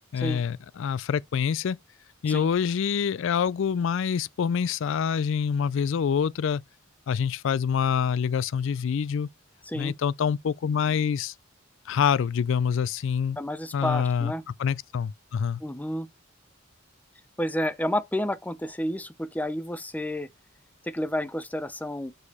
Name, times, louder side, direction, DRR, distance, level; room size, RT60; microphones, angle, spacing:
voice 1, 0.1-1.8 2.2-6.6 7.1-9.3 9.7-11.3 11.9-13.4 13.7-14.3 14.6-15.6, left 7 dB, 65° left, 0.3 m, -26 dB
voice 2, 13.4-14.4 15.6-16.1 17.4-20.3 20.8-22.1, left 1 dB, 10° left, 0.6 m, -30 dB
6.5 x 4.8 x 5.3 m
head